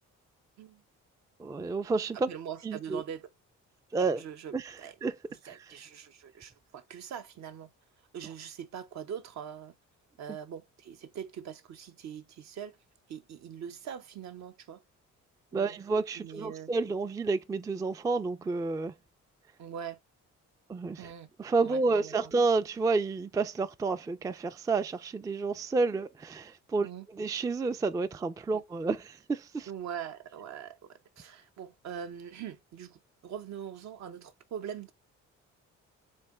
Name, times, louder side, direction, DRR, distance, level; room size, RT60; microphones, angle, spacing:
voice 1, 1.4-2.3 2.6-3.0 3.9-4.2 4.5-4.7 5.0-5.1 5.4-5.6 15.5-18.9 20.7-21.1 21.4-26.9 27.2-29.7, right 3 dB, 10° right, 0.3 m, -30 dB
voice 2, 2.1-3.3 4.0-5.0 5.3-7.7 8.1-9.8 10.2-12.8 13.1-14.8 15.5-15.8 16.1-16.7 19.6-20.0 21.0-21.3 21.6-22.3 26.8-27.1 28.5-28.6 29.7-34.9, right 8 dB, 65° right, 0.8 m, -42 dB
3.7 x 3.3 x 4.1 m
cardioid pair, 90°, 30 cm